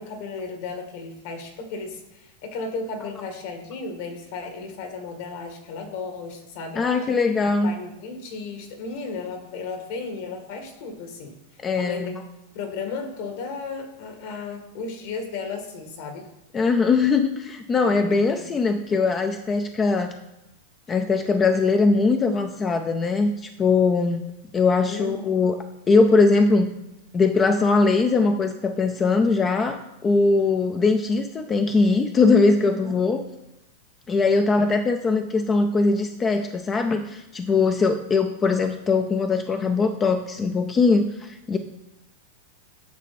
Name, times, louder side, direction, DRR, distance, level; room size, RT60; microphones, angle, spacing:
voice 1, 0.0-6.8 7.6-11.4 11.8-12.2 12.5-16.3 17.8-18.5 24.9-25.2 32.5-32.9, left 4 dB, 55° left, 5 dB, 1.9 m, -34 dB
voice 2, 6.8-7.7 11.6-12.2 16.5-20.1 20.9-24.2 24.5-25.6 25.9-26.7 27.1-29.8 30.0-33.2 34.1-41.6, left 4 dB, 15° left, 7 dB, 0.5 m, -21 dB
9.4 x 6.6 x 4.2 m, 0.93 s
supercardioid pair, 155°, 0 cm